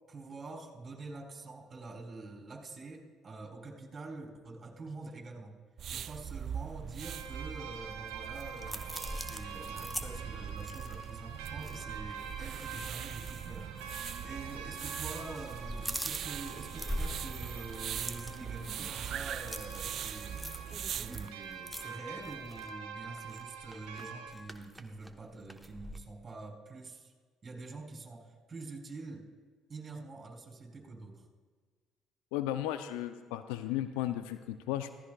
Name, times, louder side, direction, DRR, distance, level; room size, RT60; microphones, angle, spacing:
voice 1, 0.1-5.5 5.9-20.4 20.8-27.1 27.4-29.3 29.7-31.2, right 3 dB, 35° right, 0 dB, 3.3 m, -46 dB
sound 1, 5.8-21.3, right 9 dB, 55° right, 0.4 m, -42 dB
sound 2, 7.0-24.3, right 5 dB, 80° right, 1.5 m, -46 dB
sound 3, 7.8-12.2 12.5-12.7 13.2-13.4 14.2-14.8 15.1-26.0, equal, ahead, 1.0 m, -43 dB
voice 2, 32.3-34.9, left 13 dB, 80° left, 11 dB, 0.5 m, -35 dB
15.5 x 15.0 x 2.3 m, 1.5 s
hypercardioid pair, 55°, 0 cm